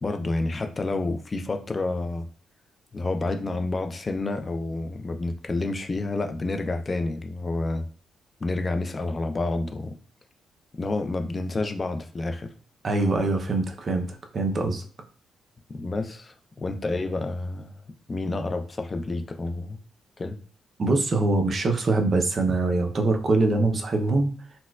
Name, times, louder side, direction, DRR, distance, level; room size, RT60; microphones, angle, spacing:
voice 1, 0.0-2.3 2.9-7.8 8.4-9.9 10.7-12.5 15.7-17.7 18.1-19.8 20.2-20.4, left 2 dB, 30° left, 6 dB, 0.4 m, -29 dB
voice 2, 12.8-14.8 20.8-24.3, right 2 dB, 40° right, 4 dB, 0.5 m, -23 dB
4.2 x 2.3 x 2.3 m, 0.43 s
cardioid pair, 105°, 0 cm